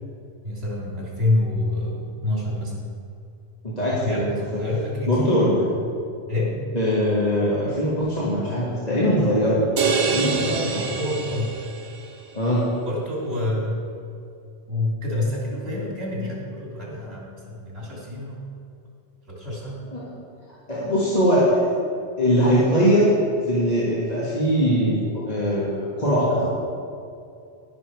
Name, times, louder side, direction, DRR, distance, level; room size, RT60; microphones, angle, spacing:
voice 1, 0.4-2.8 4.0-5.3 6.3-6.7 9.8-11.6 12.9-13.8 14.7-18.4 19.2-19.8, left 2 dB, 65° right, -4 dB, 3.4 m, -27 dB
voice 2, 3.6-4.3 5.1-5.8 6.7-9.6 10.0-10.8 12.3-12.7 19.9-20.0 20.7-21.6 22.2-23.2 23.5-26.5, equal, 35° left, -7 dB, 1.8 m, -21 dB
sound 1, 9.8-12.1, right 5 dB, 90° right, 1.2 m, -26 dB
11.5 x 10.0 x 4.7 m, 2.4 s
omnidirectional pair, 1.2 m